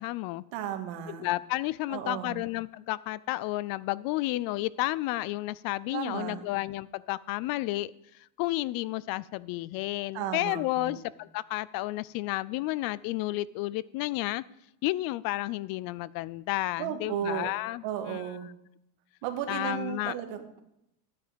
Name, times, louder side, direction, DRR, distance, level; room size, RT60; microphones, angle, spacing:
voice 1, 0.0-0.4 1.1-7.9 8.4-14.4 14.8-18.2 19.5-20.1, left 18 dB, 50° left, 20 dB, 0.4 m, -31 dB
voice 2, 0.5-1.3 1.9-2.4 5.9-6.4 10.1-11.0 16.8-17.5 17.8-18.5 19.2-20.6, right 10 dB, 65° right, 6 dB, 1.8 m, -34 dB
12.5 x 9.3 x 5.0 m, 0.81 s
cardioid pair, 145°, 49 cm